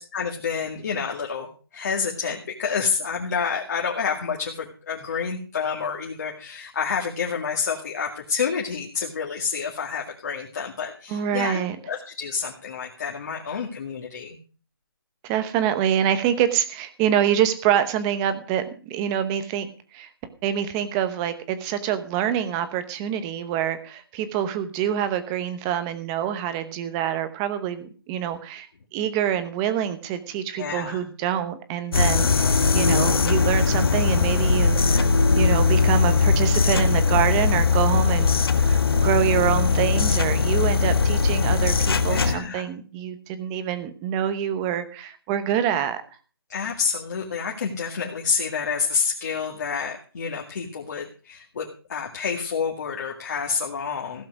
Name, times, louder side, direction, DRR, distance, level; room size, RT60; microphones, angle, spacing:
voice 1, 0.1-1.5 1.7-14.4 30.6-31.0 42.1-42.6 46.5-54.3, left 6 dB, 45° left, 0 dB, 2.2 m, -28 dB
voice 2, 11.1-11.8 15.2-19.7 19.9-20.1 20.4-28.7 28.9-38.3 38.6-46.0, right 10 dB, 15° right, 11 dB, 0.9 m, -26 dB
sound 1, 31.9-42.4, left 4 dB, 70° left, 1.6 m, -20 dB
15.5 x 7.6 x 6.2 m, 0.38 s
hypercardioid pair, 170°, 13 cm